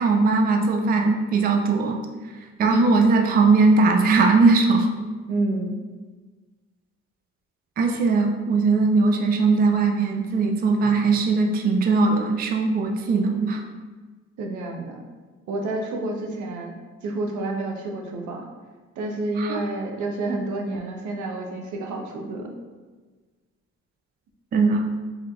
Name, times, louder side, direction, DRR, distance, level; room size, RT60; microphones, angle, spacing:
voice 1, 0.0-2.0 2.6-4.9 7.8-13.6 19.4-19.6 24.5-24.8, right 3 dB, 30° right, 3 dB, 0.4 m, -19 dB
voice 2, 2.6-3.0 5.3-5.8 10.8-10.9 14.4-15.0 15.5-16.7 17.0-18.5 19.0-22.5, right 2 dB, 75° right, 2 dB, 0.7 m, -29 dB
4.3 x 3.2 x 2.2 m, 1.3 s
cardioid pair, 90°, 30 cm